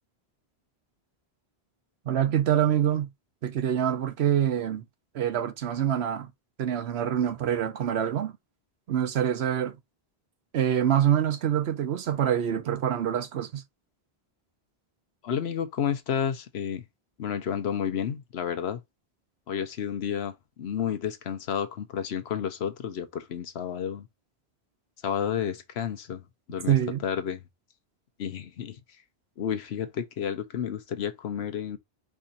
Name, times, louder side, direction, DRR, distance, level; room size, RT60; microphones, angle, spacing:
voice 1, 2.1-3.1 3.4-4.8 5.1-6.3 6.6-8.3 8.9-9.8 10.5-13.6 26.7-27.0, right 10 dB, 80° right, 1.0 m, -25 dB
voice 2, 15.2-16.8 17.2-18.8 19.5-24.1 25.0-26.2 26.5-27.4 28.2-28.8 29.4-31.8, left 8 dB, 80° left, 1.0 m, -31 dB
4.8 x 2.5 x 4.1 m
omnidirectional pair, 1.1 m